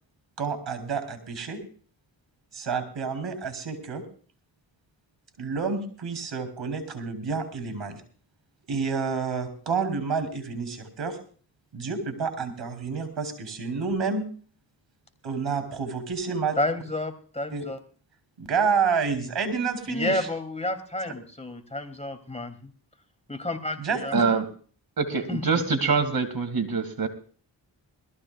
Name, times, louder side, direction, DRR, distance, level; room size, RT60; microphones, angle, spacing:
voice 1, 0.4-1.6 2.5-4.0 5.4-8.0 8.7-11.2 11.7-14.2 15.2-16.6 17.5-17.7 18.4-20.3 23.8-24.2, right 5 dB, 80° right, 8 dB, 3.6 m, -29 dB
voice 2, 16.6-17.8 19.9-22.7 23.3-24.4 25.3-25.4, left 1 dB, 15° left, 6 dB, 2.9 m, -31 dB
voice 3, 24.1-24.4 25.0-27.1, right 5 dB, 50° right, 8 dB, 2.5 m, -24 dB
21.5 x 14.5 x 2.4 m, 0.42 s
cardioid pair, 45°, 45 cm